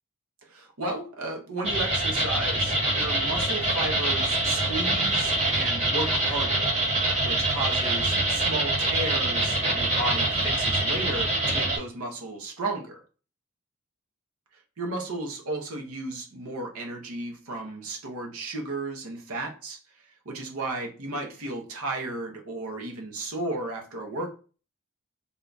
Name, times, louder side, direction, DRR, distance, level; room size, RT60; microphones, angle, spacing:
voice 1, 0.4-6.7 7.2-13.0 14.8-24.3, right 2 dB, 90° right, 2 dB, 0.8 m, -34 dB
sound 1, 1.6-11.8, right 2 dB, 35° right, 1.0 m, -25 dB
3.6 x 2.3 x 3.9 m, 0.38 s
head